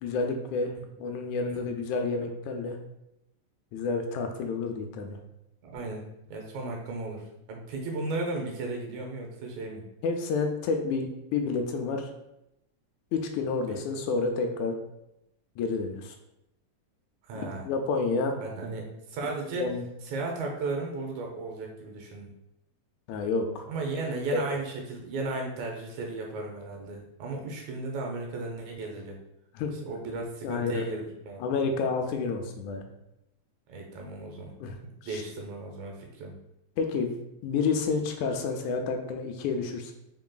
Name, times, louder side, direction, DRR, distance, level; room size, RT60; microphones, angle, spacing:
voice 1, 0.0-2.8 3.7-5.2 10.0-12.1 13.1-14.8 15.6-16.1 17.7-18.4 19.4-19.9 23.1-23.6 24.3-24.4 29.6-29.8 30.4-30.9 31.4-32.8 34.6-34.8 35.1-35.2 36.8-37.1 37.4-39.9, left 4 dB, 85° left, 4 dB, 1.9 m, -29 dB
voice 2, 5.6-9.9 13.7-13.8 17.2-17.7 18.4-19.7 20.1-22.3 23.7-29.2 29.8-31.4 33.7-34.5 35.0-36.4, right 3 dB, 75° right, 1 dB, 2.0 m, -35 dB
4.6 x 3.9 x 2.2 m, 0.86 s
omnidirectional pair, 3.4 m